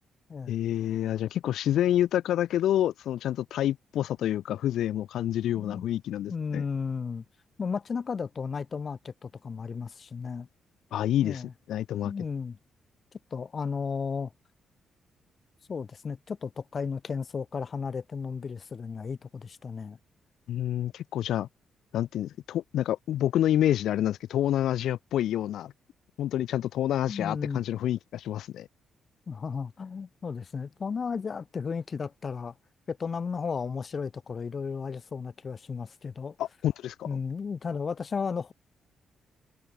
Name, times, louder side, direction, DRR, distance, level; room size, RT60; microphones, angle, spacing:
voice 1, 0.5-6.6 10.9-12.1 20.5-21.5 21.9-25.7 26.2-28.7 36.4-37.2, left 12 dB, 85° left, 0.4 m, -28 dB
voice 2, 5.5-5.9 6.3-7.2 7.6-10.5 11.2-11.5 12.0-12.6 13.3-14.3 15.7-20.0 27.1-27.6 29.3-32.5 32.9-36.4 37.0-38.5, left 5 dB, 40° left, 0.6 m, -34 dB
cardioid pair, 105°, 0 cm